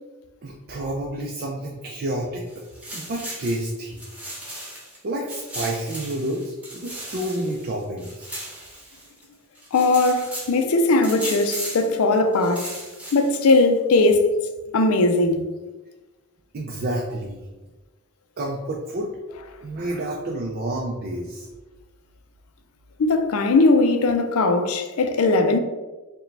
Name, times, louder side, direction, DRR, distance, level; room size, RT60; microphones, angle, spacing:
voice 1, 0.4-2.6 2.9-4.0 5.0-8.3 16.5-17.4 18.4-19.1 19.6-21.5, right 1 dB, 45° right, 0.4 m, -29 dB
sound 1, 2.5-5.0 5.3-9.2 9.5-10.6 11.0-11.9 12.3-13.5, right 1 dB, 5° right, 1.0 m, -36 dB
voice 2, 9.7-12.7 13.1-14.3 14.7-15.4 23.0-25.6, left 2 dB, 75° left, 0.4 m, -19 dB
4.7 x 2.2 x 3.2 m
head